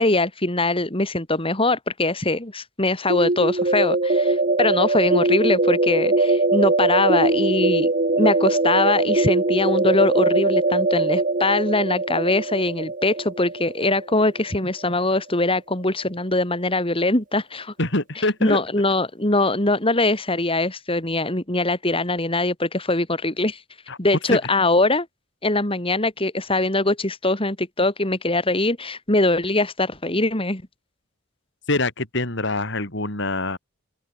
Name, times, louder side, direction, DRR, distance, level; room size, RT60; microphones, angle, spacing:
voice 1, 0.0-7.9 8.2-17.7 18.1-23.6 24.0-25.1 25.4-30.6, left 2 dB, 25° left, 4.1 m, -22 dB
sound 1, 3.1-14.8, right 2 dB, 40° right, 1.9 m, -21 dB
voice 2, 17.8-18.6 23.9-24.0 24.3-24.4 31.7-33.6, left 2 dB, 60° left, 6.3 m, -24 dB
open air
head